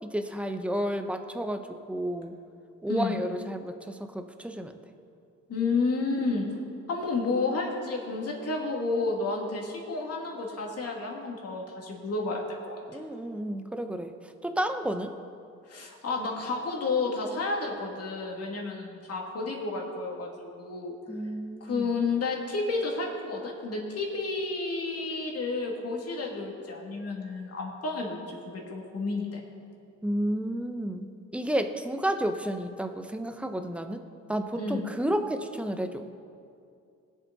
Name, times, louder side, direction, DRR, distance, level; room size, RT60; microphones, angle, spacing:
voice 1, 0.0-2.3 2.8-4.7 12.9-14.1 14.4-15.1 21.1-21.9 30.0-34.0 34.3-36.2, right 1 dB, 5° right, 6 dB, 0.9 m, -31 dB
voice 2, 2.9-3.2 5.5-6.5 6.9-13.0 15.7-20.9 21.6-28.2 28.5-29.4 34.5-34.9, left 3 dB, 55° left, -1 dB, 2.6 m, -31 dB
20.0 x 7.5 x 4.2 m, 2.5 s
cardioid pair, 90°, 30 cm